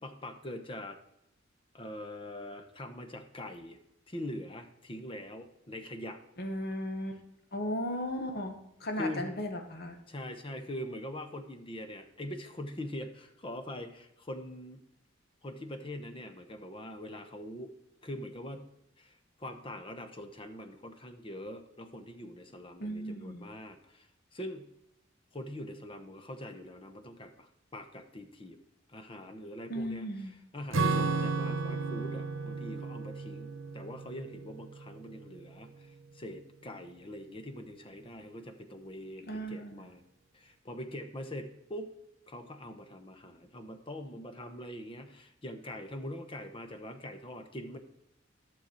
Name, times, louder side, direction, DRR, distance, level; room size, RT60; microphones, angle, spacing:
voice 1, 0.0-1.0 1.7-3.8 4.1-6.2 9.0-9.3 10.1-14.8 15.4-17.7 18.0-18.7 19.0-24.7 25.3-28.6 28.9-30.1 30.5-40.0 40.3-41.9 42.3-47.8, left 1 dB, 25° left, 7 dB, 0.8 m, -43 dB
voice 2, 6.4-7.2 7.5-10.0 22.8-23.4 29.7-30.4 39.2-39.9, equal, 50° left, 5 dB, 1.2 m, -36 dB
Acoustic guitar / Strum, 30.7-35.5, right 4 dB, 85° right, 0.9 m, -33 dB
11.0 x 6.4 x 4.4 m, 0.83 s
head